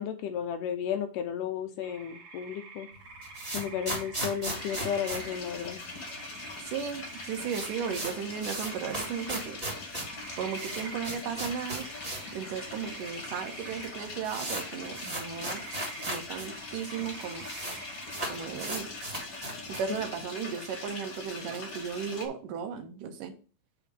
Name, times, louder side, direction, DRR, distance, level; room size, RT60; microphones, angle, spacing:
voice 1, 0.0-2.9 3.5-5.8, left 8 dB, 75° left, 8 dB, 2.1 m, -33 dB
sound 1, 1.8-18.8, right 4 dB, 45° right, 2.4 m, -48 dB
sound 2, 2.9-6.2 6.4-6.5 6.8-6.9 7.2-12.4 12.7-12.8 13.5-13.6 13.8-16.5 16.7-16.8 17.0-17.8 18.1-20.0, right 1 dB, 15° right, 1.8 m, -37 dB
sound 3, 4.4-22.3, left 3 dB, 45° left, 1.6 m, -42 dB
voice 2, 6.6-9.6 10.4-11.9 12.3-15.6 16.1-17.5 18.3-18.9 19.7-23.3, right 7 dB, 75° right, 6 dB, 2.3 m, -35 dB
8.5 x 3.7 x 5.0 m, 0.36 s
omnidirectional pair, 4.1 m